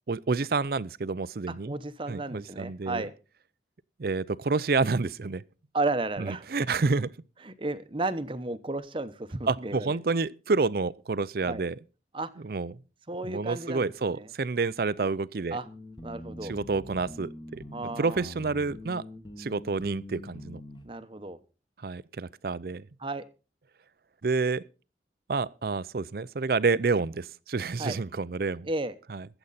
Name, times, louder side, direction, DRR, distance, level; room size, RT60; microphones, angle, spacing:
voice 1, 0.1-1.7 2.1-3.1 4.0-5.4 6.2-7.1 9.5-11.8 12.4-12.7 13.2-15.6 16.4-17.6 18.0-19.0 19.4-20.6 21.8-22.8 24.2-24.6 25.3-28.7 29.1-29.3, right 4 dB, 55° right, 0.5 m, -29 dB
voice 2, 1.5-3.1 5.7-6.5 7.4-10.0 11.5-11.6 12.1-12.3 13.1-14.3 15.0-15.1 15.5-15.7 16.0-16.5 17.7-18.3 20.8-21.4 23.0-23.2 27.8-28.0 28.6-28.9, right 2 dB, 30° right, 0.9 m, -33 dB
sound 1, 15.6-20.9, left 1 dB, 25° left, 1.5 m, -44 dB
22.0 x 8.0 x 4.1 m
head